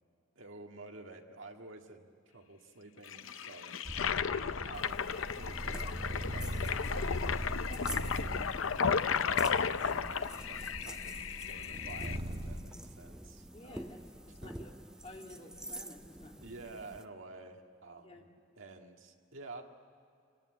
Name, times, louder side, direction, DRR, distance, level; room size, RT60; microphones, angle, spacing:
voice 1, 0.4-3.7 4.0-7.4 7.8-11.2 11.5-14.1 14.4-14.5 16.4-18.3 18.6-19.6, right 3 dB, 75° right, 3 dB, 2.0 m, -51 dB
Toilet flush, 3.1-12.2, left 6 dB, 85° left, 0.6 m, -34 dB
sound 1, 3.8-12.6, equal, 30° right, 1.6 m, -41 dB
sound 2, 4.7-17.0, right 1 dB, 5° right, 0.5 m, -49 dB
voice 2, 13.5-14.8 15.0-16.4 18.0-18.2, left 1 dB, 30° left, 1 dB, 2.4 m, -52 dB
27.0 x 18.0 x 8.9 m, 2.5 s
head